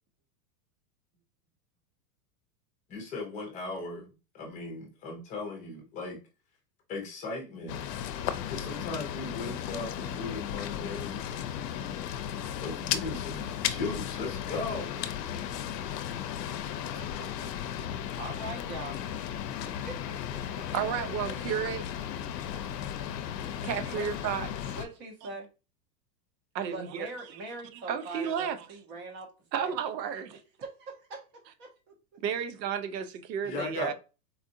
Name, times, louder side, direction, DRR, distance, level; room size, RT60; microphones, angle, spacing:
voice 1, 2.9-4.1 4.3-6.2 6.9-7.8 8.5-11.2 12.6-14.9 33.4-33.9, left 3 dB, 15° left, 0.8 m, -37 dB
sound 1, 7.7-24.9, left 10 dB, 75° left, 0.6 m, -35 dB
voice 2, 16.9-17.8 18.2-19.0 19.6-20.6 21.3-21.4 23.9-24.1 24.7-25.5 26.7-29.8 30.6-31.2 31.5-31.9, right 2 dB, 35° right, 1.1 m, -42 dB
voice 3, 20.7-21.8 23.6-24.8 26.5-27.4 27.9-28.6 29.5-30.4 32.2-33.9, right 8 dB, 85° right, 0.8 m, -32 dB
4.2 x 2.5 x 2.7 m
supercardioid pair, 170°, 49 cm